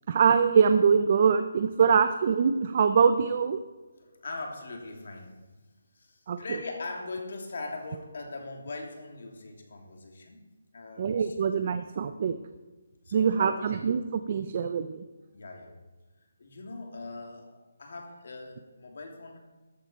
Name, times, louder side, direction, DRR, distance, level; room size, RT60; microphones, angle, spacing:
voice 1, 0.1-3.6 6.3-6.6 11.0-12.4 13.1-15.0, right 6 dB, 35° right, 9 dB, 0.5 m, -23 dB
voice 2, 4.0-5.3 5.9-10.4 10.7-11.5 13.0-13.7 15.3-15.7 16.4-19.4, left 3 dB, 60° left, 2 dB, 2.9 m, -41 dB
14.0 x 11.0 x 4.4 m, 1.2 s
hypercardioid pair, 170°, 0 cm